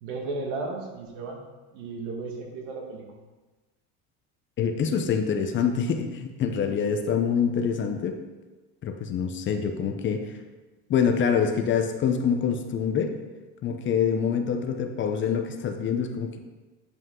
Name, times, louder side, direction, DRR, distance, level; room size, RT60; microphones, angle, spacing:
voice 1, 0.0-1.4 1.7-3.1, right 3 dB, 80° right, 1 dB, 1.8 m, -34 dB
voice 2, 4.6-8.2 8.8-10.3 10.9-13.1 13.6-16.4, left 7 dB, 35° left, 6 dB, 0.7 m, -25 dB
9.6 x 5.3 x 3.8 m, 1.2 s
supercardioid pair, 130°, 34 cm